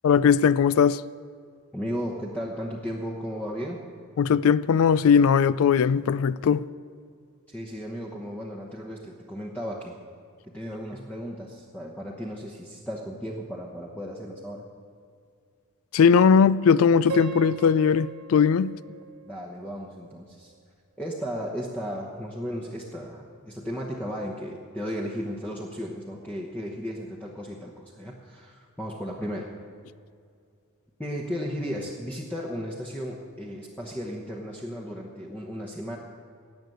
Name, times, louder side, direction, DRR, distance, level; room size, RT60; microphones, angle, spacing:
voice 1, 0.0-1.0 4.2-6.6 15.9-18.7, left 6 dB, 70° left, 0.3 m, -19 dB
voice 2, 1.7-3.8 7.5-10.0 10.4-14.6 19.2-20.5 21.0-29.5 31.0-36.0, equal, 5° left, 0.9 m, -35 dB
Piano, 17.1-20.1, right 3 dB, 85° right, 0.8 m, -38 dB
18.0 x 6.7 x 7.8 m
head